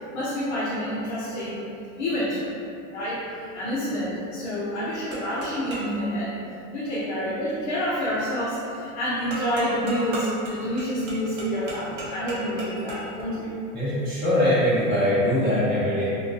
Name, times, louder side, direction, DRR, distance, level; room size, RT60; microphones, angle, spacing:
voice 1, 0.1-1.6 2.0-2.4 2.9-3.2 3.5-6.3 6.7-13.5, equal, 35° left, -9 dB, 0.4 m, -28 dB
sound 1, 5.1-6.0 9.3-13.2, right 2 dB, 75° right, 0.9 m, -35 dB
voice 2, 13.7-16.1, left 1 dB, 25° right, -12 dB, 0.9 m, -22 dB
2.7 x 2.2 x 2.5 m, 2.6 s
supercardioid pair, 155°, 41 cm